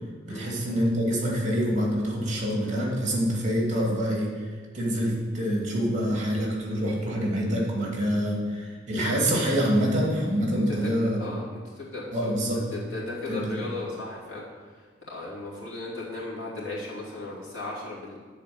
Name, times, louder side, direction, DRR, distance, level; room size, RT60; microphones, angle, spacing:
voice 1, 0.3-4.5 4.7-11.2 12.1-12.6 13.3-13.6, equal, 40° right, -3 dB, 2.4 m, -26 dB
voice 2, 10.5-12.1 12.6-14.4 15.1-18.2, left 2 dB, 85° left, -5 dB, 2.7 m, -36 dB
10.0 x 4.3 x 7.0 m, 1.5 s
head